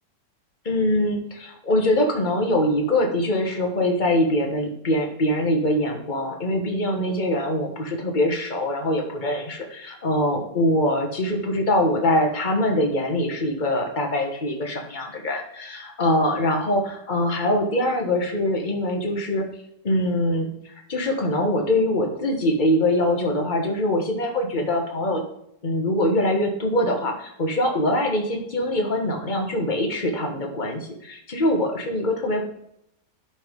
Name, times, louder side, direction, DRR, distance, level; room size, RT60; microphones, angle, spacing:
voice 1, 0.6-19.5 19.8-25.2 25.6-32.4, left 1 dB, 30° left, 2 dB, 1.5 m, -23 dB
11.5 x 4.2 x 5.3 m, 0.76 s
omnidirectional pair, 1.8 m